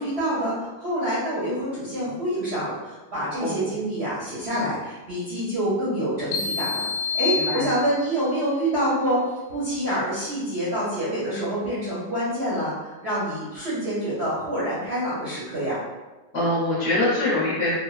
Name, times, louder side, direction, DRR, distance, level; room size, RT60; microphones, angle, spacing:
voice 1, 0.0-6.9 7.1-9.2 9.5-15.8, right 1 dB, 50° right, -10 dB, 0.8 m, -27 dB
sound 1, 6.3-8.3, left 5 dB, 80° left, 1.2 m, -28 dB
voice 2, 16.3-17.8, left 1 dB, 50° left, -8 dB, 1.1 m, -23 dB
3.3 x 2.1 x 2.3 m, 1.2 s
omnidirectional pair, 1.9 m